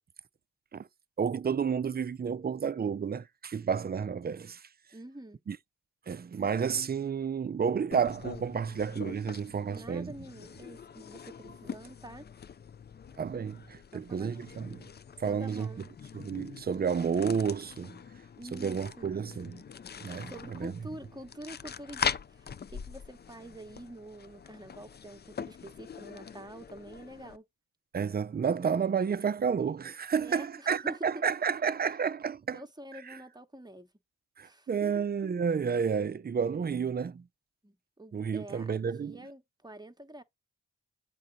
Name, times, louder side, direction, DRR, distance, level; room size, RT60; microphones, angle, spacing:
voice 1, 1.2-4.6 5.5-5.6 6.1-10.1 13.2-14.8 15.2-15.7 16.1-18.0 18.5-19.6 20.0-20.7 27.9-32.6 33.1-33.2 34.4-37.3 38.1-39.2, right 6 dB, 30° right, 0.4 m, -31 dB
voice 2, 4.9-5.4 9.7-12.3 13.9-14.3 15.2-15.9 18.4-19.1 20.2-27.4 30.2-31.3 32.5-33.9 34.4-35.0 37.6-40.2, right 1 dB, 15° right, 1.0 m, -47 dB
sound 1, 7.9-27.4, left 7 dB, 35° left, 0.4 m, -42 dB
7.3 x 3.9 x 4.0 m
cardioid pair, 45°, 30 cm